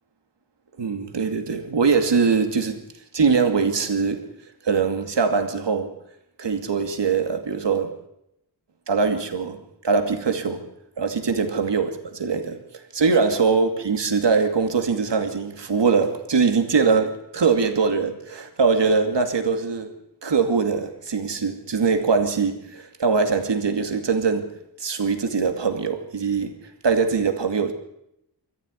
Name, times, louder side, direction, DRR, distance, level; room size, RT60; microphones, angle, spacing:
voice 1, 0.8-2.8 3.1-4.3 4.6-6.0 6.4-8.0 8.9-10.7 11.0-19.9 20.2-24.5 24.8-26.5 26.8-27.7, right 5 dB, 75° right, 2.5 m, -22 dB
25.5 x 14.5 x 9.8 m
wide cardioid pair, 105°, 43 cm